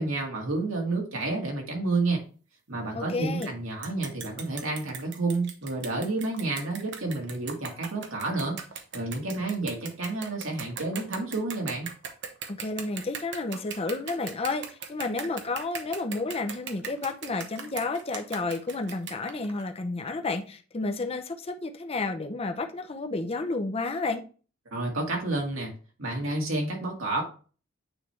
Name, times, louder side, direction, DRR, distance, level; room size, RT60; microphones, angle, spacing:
voice 1, 0.0-2.2 2.7-8.6 8.9-11.9 24.7-25.7 26.0-27.2, right 2 dB, 85° right, 1.9 m, -30 dB
voice 2, 2.9-3.5 12.5-24.2, left 3 dB, 30° left, 0.6 m, -31 dB
sound 1, 3.4-3.5 3.8-19.7, right 6 dB, 60° right, 0.8 m, -39 dB
8.9 x 3.3 x 3.3 m
head